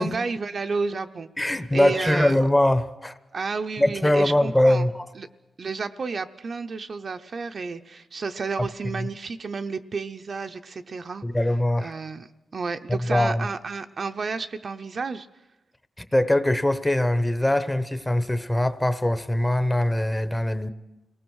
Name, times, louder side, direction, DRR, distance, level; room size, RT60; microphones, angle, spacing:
voice 1, 0.0-1.3 1.7-2.4 3.3-4.9 5.1-5.3 5.6-11.2 11.8-15.3, right 4 dB, 50° right, 8 dB, 0.7 m, -31 dB
voice 2, 1.4-3.2 3.8-5.1 8.6-8.7 9.0-9.1 11.2-11.9 12.9-13.5 16.0-20.7, left 1 dB, 10° left, 12 dB, 0.9 m, -22 dB
28.0 x 18.5 x 6.3 m, 1.0 s
wide cardioid pair, 120°, 0 cm